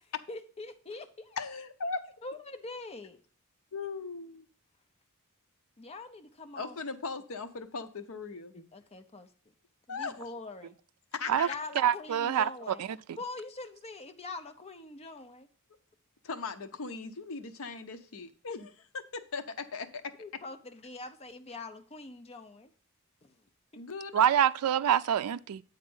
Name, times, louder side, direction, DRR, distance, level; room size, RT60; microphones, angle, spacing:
voice 1, 0.0-1.4 2.2-3.2 5.8-6.8 8.5-9.3 9.9-10.7 11.3-12.8 13.2-15.5 20.2-22.7 23.2-23.4, left 3 dB, 30° left, 0.7 m, -44 dB
voice 2, 1.4-2.0 3.7-4.5 6.6-8.5 9.9-10.3 11.1-11.6 16.2-20.0 23.8-24.3, left 4 dB, 65° left, 0.8 m, -38 dB
voice 3, 11.8-13.2 24.1-25.6, right 9 dB, 75° right, 0.3 m, -26 dB
8.8 x 4.0 x 5.5 m
head